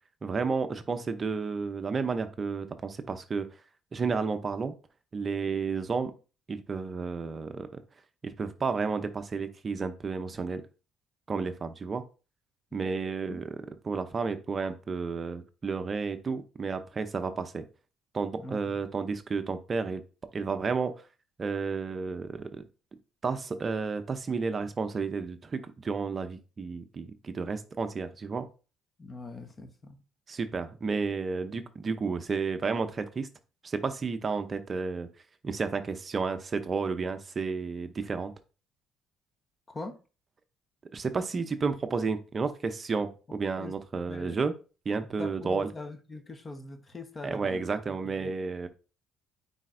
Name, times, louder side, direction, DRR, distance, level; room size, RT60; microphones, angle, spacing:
voice 1, 0.2-3.5 3.9-4.7 5.1-6.1 6.5-7.7 8.2-10.6 11.3-12.0 12.7-13.5 13.8-17.6 18.1-20.0 20.3-21.0 21.4-22.6 23.2-28.5 30.3-33.3 33.6-35.1 35.4-38.3 40.9-44.5 44.9-45.7 47.2-48.7, right 4 dB, 30° right, 0.6 m, -31 dB
voice 2, 18.4-18.8 29.0-30.0 39.7-40.0 43.3-43.7 44.1-44.4 45.2-48.4, left 2 dB, 25° left, 1.0 m, -43 dB
8.9 x 4.1 x 2.6 m
cardioid pair, 105°, 0 cm